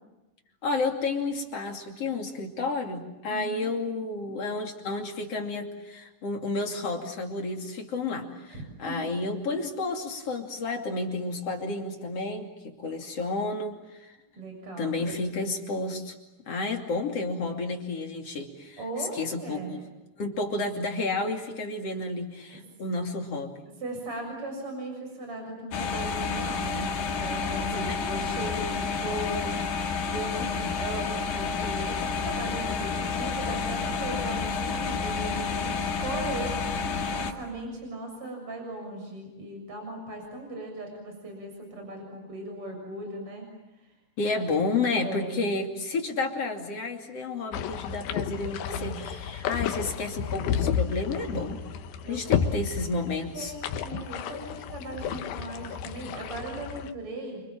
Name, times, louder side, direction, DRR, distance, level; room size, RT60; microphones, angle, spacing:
voice 1, 0.6-14.2 14.8-16.1 16.5-19.8 20.2-23.6 27.9-28.0 44.2-51.6 52.1-53.5, left 3 dB, 40° left, 2 dB, 3.4 m, -31 dB
voice 2, 3.3-3.7 8.5-9.1 14.4-14.9 16.5-16.6 18.8-19.8 22.5-22.6 23.8-29.8 30.1-43.5 43.7-43.9 44.3-44.5 45.0-45.4 48.7-49.0 52.0-52.6 53.3-57.4, right 2 dB, 35° right, 3 dB, 7.7 m, -38 dB
sound 1, 25.7-37.3, left 5 dB, 90° left, 4.5 m, -30 dB
sound 2, 47.5-56.9, left 8 dB, 70° left, 2.9 m, -32 dB
29.0 x 26.5 x 7.5 m, 1.0 s
omnidirectional pair, 4.6 m